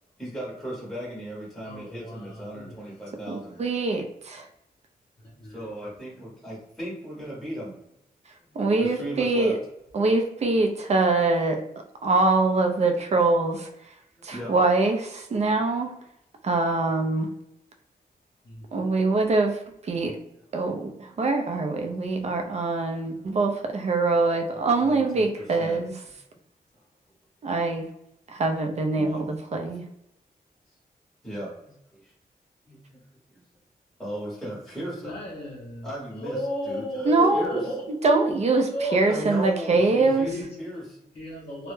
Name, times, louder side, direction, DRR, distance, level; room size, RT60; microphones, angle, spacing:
voice 1, 0.2-3.6 5.5-7.7 8.8-9.6 14.3-14.5 24.8-25.8 28.9-29.3 31.2-32.1 32.7-33.0 33.3-33.4 34.0-35.2 35.8-36.4 36.7-37.6 39.1-41.0, right 1 dB, ahead, -7 dB, 0.8 m, -37 dB
voice 2, 1.6-2.7 5.4-5.9 18.4-18.9 35.0-37.8 38.1-39.3 40.2-40.5 41.1-41.7, equal, 40° left, -5 dB, 0.6 m, -34 dB
voice 3, 3.3-4.5 8.6-9.6 9.9-11.6 12.0-13.7 14.2-15.9 16.4-17.3 18.7-20.2 20.5-25.9 27.4-27.9 28.3-29.8 37.0-37.6 38.0-40.3, right 3 dB, 40° right, 4 dB, 0.4 m, -23 dB
2.2 x 2.0 x 3.0 m, 0.82 s
wide cardioid pair, 135°, 16 cm